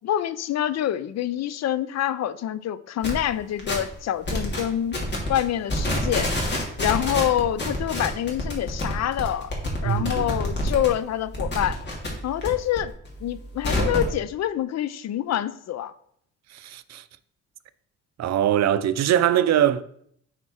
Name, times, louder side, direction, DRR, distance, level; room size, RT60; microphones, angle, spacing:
voice 1, 0.0-5.0 5.3-6.3 6.8-9.5 9.8-11.8 12.2-12.9 13.2-15.9, left 11 dB, 60° left, 0.5 m, -26 dB
sound 1, 3.0-3.2 3.6-3.9 4.2-4.6 4.9-5.4 5.6-10.9 11.2-12.5 12.8-14.1, left 1 dB, 35° left, 2.6 m, -27 dB
voice 2, 9.8-10.3 16.5-17.0 18.2-19.8, right 11 dB, 60° right, 0.6 m, -22 dB
8.9 x 4.4 x 4.3 m
cardioid pair, 90°, 30 cm